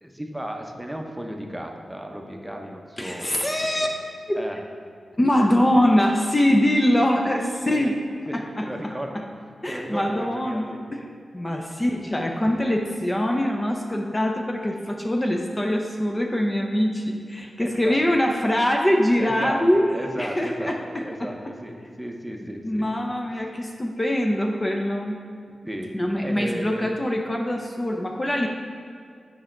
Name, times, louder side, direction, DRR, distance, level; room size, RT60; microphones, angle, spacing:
voice 1, 0.0-3.5 3.8-3.9 4.3-4.6 8.3-9.1 9.7-10.8 17.6-18.0 19.2-19.6 19.9-20.7 21.0-22.9 25.6-26.9, right 1 dB, 10° right, 2 dB, 0.8 m, -34 dB
voice 2, 3.0-3.9 4.3-4.4 5.2-8.0 8.3-8.9 9.6-11.0 11.3-19.8 20.2-21.3 22.6-25.2 25.9-28.5, left 1 dB, 25° left, 2 dB, 0.6 m, -23 dB
7.3 x 5.2 x 4.4 m, 2.2 s
cardioid pair, 60°, 0 cm